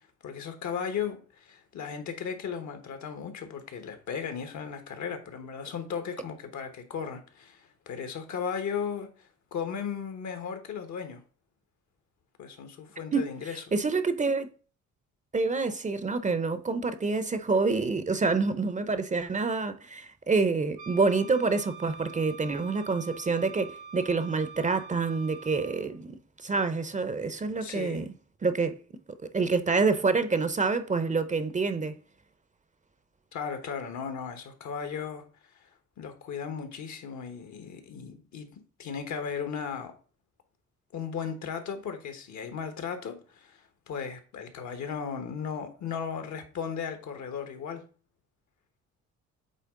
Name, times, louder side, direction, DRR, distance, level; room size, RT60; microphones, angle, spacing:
voice 1, 0.2-11.2 12.4-13.6 27.6-28.1 33.3-35.2 35.6-35.7 36.0-38.5 38.8-39.9 40.9-47.9, left 7 dB, 70° left, 1.3 m, -36 dB
voice 2, 13.7-14.5 15.3-28.1 28.4-28.8 29.3-32.0, right 4 dB, 25° right, 0.6 m, -27 dB
Wind instrument woodwind instrument, 20.8-25.9, right 5 dB, 85° right, 1.2 m, -45 dB
8.3 x 3.2 x 3.7 m
cardioid pair, 90°, 30 cm